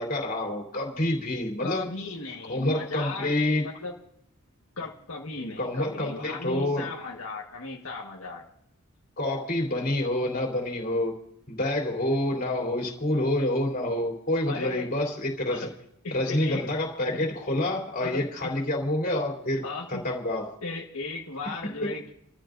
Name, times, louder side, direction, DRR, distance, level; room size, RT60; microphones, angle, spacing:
voice 1, 0.0-1.9 2.5-3.7 5.4-6.9 9.2-11.2 11.5-15.7 16.1-20.6 21.6-21.9, left 1 dB, 45° left, 0 dB, 3.4 m, -28 dB
voice 2, 1.6-3.3 3.6-3.9 4.8-8.5 14.5-14.9 15.5-15.7 16.0-16.7 17.2-17.3 19.6-20.0 20.6-22.1, left 3 dB, 80° left, -2 dB, 1.5 m, -36 dB
29.0 x 14.0 x 2.6 m, 0.74 s
head